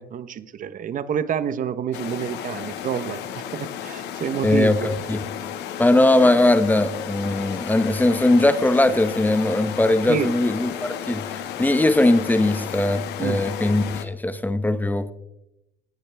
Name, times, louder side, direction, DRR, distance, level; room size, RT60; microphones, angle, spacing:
voice 1, 0.0-4.9 10.1-10.3 13.2-13.4, right 8 dB, 50° right, 1.0 m, -28 dB
sound 1, 1.9-14.1, left 9 dB, 85° left, 1.8 m, -33 dB
voice 2, 4.4-5.2 5.8-15.1, left 2 dB, 10° left, 1.0 m, -20 dB
17.5 x 17.0 x 3.5 m
cardioid pair, 110°, 17 cm